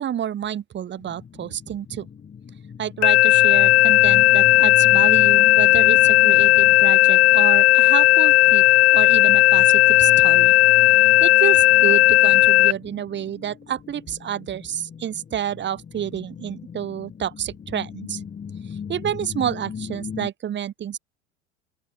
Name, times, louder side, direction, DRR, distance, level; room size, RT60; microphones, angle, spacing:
voice 1, 0.0-2.1 2.8-8.6 8.9-10.5 11.2-18.2 18.9-21.0, right 10 dB, 30° right, 2.4 m, -29 dB
sound 1, 1.0-20.3, left 7 dB, 25° left, 3.8 m, -38 dB
sound 2, 3.0-12.7, left 17 dB, 65° left, 0.5 m, -15 dB
open air
figure-of-eight pair, 80°, 37 cm